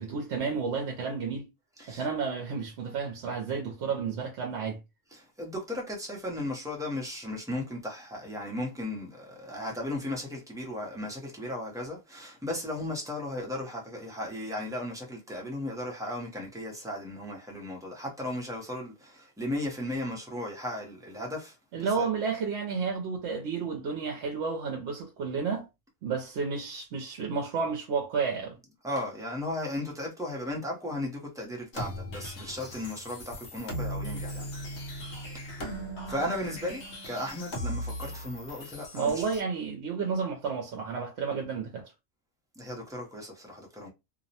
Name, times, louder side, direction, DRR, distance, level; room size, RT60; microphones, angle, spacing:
voice 1, 0.0-1.5 1.9-4.8 21.7-25.7 26.0-28.6 38.9-41.9, right 5 dB, 70° right, 0.8 m, -31 dB
voice 2, 5.1-22.1 28.8-35.4 36.1-39.3 42.6-43.9, left 1 dB, 5° right, 0.5 m, -36 dB
sound 1, 31.7-39.4, equal, 65° left, 1.0 m, -38 dB
2.6 x 2.0 x 2.7 m
omnidirectional pair, 1.2 m